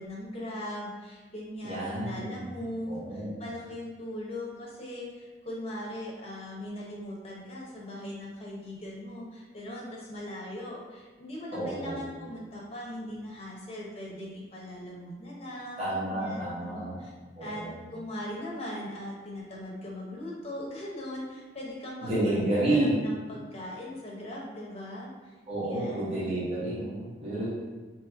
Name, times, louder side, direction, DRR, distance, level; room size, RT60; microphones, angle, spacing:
voice 1, 0.0-17.1 17.4-17.6 17.9-25.3 25.6-26.3, left 1 dB, 35° left, -4 dB, 0.9 m, -39 dB
voice 2, 1.6-2.4 2.9-3.3 11.5-12.0 15.8-17.0 17.3-17.7 22.0-22.9 25.5-27.5, right 1 dB, 35° right, -10 dB, 1.4 m, -30 dB
3.1 x 2.9 x 4.5 m, 1.3 s
head